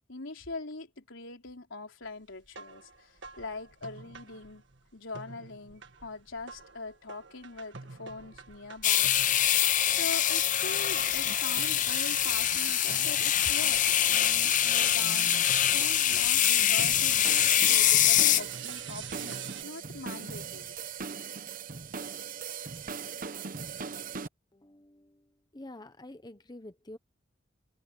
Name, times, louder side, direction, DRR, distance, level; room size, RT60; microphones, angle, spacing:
voice 1, 0.1-4.6 4.9-9.1 9.9-13.8 14.1-20.8, left 3 dB, 85° left, 3.7 m, -42 dB
sound 1, 2.5-4.8 5.1-19.6, right 7 dB, 65° right, 1.9 m, -43 dB
sound 2, 8.8-18.4, left 11 dB, 40° left, 0.7 m, -24 dB
sound 3, 16.8-24.3, right 6 dB, 45° right, 0.8 m, -39 dB
voice 2, 24.5-25.3 25.5-27.0, left 1 dB, 20° left, 1.0 m, -47 dB
head